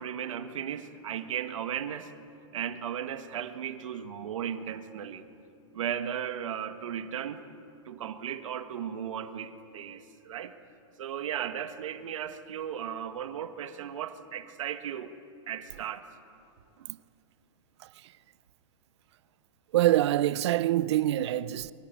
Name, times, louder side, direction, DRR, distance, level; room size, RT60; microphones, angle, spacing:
voice 1, 0.0-2.1 2.5-5.2 5.7-7.4 7.9-10.5 11.0-15.1 15.5-16.1, right 9 dB, 75° right, 1.8 m, -36 dB
voice 2, 17.8-18.1 19.7-21.7, right 14 dB, 60° right, 0.8 m, -25 dB
23.5 x 23.5 x 9.4 m
supercardioid pair, 155°, 17 cm